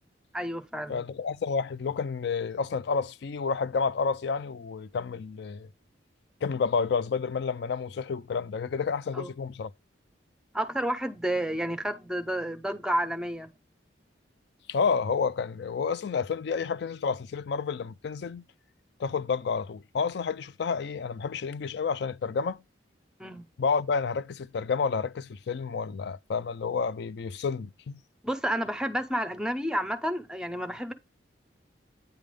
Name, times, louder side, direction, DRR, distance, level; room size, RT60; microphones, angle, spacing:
voice 1, 0.3-1.0 9.1-9.3 10.5-13.5 23.2-23.5 28.2-30.9, right 1 dB, 5° right, 0.5 m, -30 dB
voice 2, 0.9-5.7 6.4-9.7 14.7-18.4 19.0-22.6 23.6-28.0, left 5 dB, 60° left, 0.3 m, -30 dB
9.1 x 3.4 x 5.1 m
head